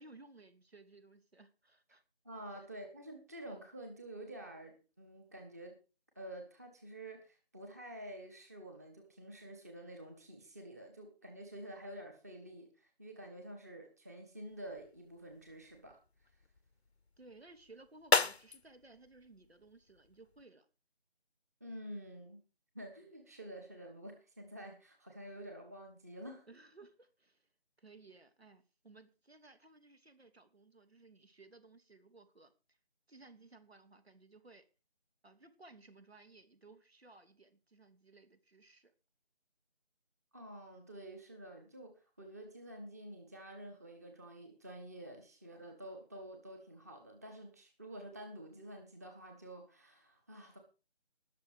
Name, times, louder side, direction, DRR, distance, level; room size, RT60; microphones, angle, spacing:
voice 1, 0.0-2.0 2.5-2.7 17.2-20.7 26.5-27.5 27.8-32.8 33.1-34.6 35.2-38.9, right 3 dB, 70° right, 2.9 m, -59 dB
voice 2, 2.2-5.8 6.1-16.0 21.6-22.4 22.7-26.4 40.3-50.6, right 1 dB, 15° right, 1.4 m, -49 dB
sound 1, 14.5-20.4, left 4 dB, 85° left, 1.0 m, -38 dB
20.0 x 6.8 x 5.0 m
figure-of-eight pair, 170°, 32 cm